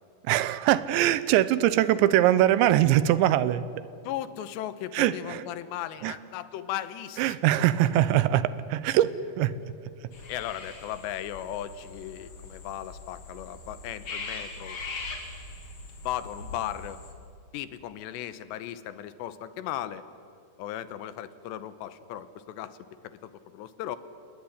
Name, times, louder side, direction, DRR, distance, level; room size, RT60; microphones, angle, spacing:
voice 1, 0.3-3.6 4.9-5.5 6.0-6.1 7.2-9.1 9.4-9.5, right 13 dB, 85° right, 15 dB, 3.1 m, -22 dB
voice 2, 4.0-7.7 10.3-14.8 16.0-17.0 17.5-20.1 20.6-22.8 23.0-24.0, left 11 dB, 80° left, 13 dB, 3.0 m, -36 dB
sound 1, 10.1-17.1, left 3 dB, 35° left, 3.1 m, -41 dB
28.5 x 19.5 x 9.9 m, 2.3 s
omnidirectional pair, 5.2 m